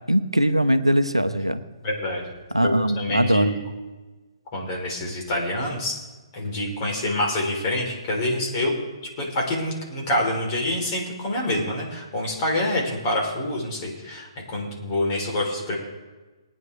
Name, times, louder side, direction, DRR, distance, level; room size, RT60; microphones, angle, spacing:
voice 1, 0.1-1.6 2.5-3.5, equal, 90° right, 11 dB, 0.9 m, -21 dB
voice 2, 1.8-2.2 2.6-3.6 4.5-6.0 6.3-8.7 9.2-15.8, left 1 dB, 30° left, -1 dB, 3.8 m, -26 dB
20.5 x 9.6 x 3.5 m, 1.2 s
figure-of-eight pair, 130°, 3 cm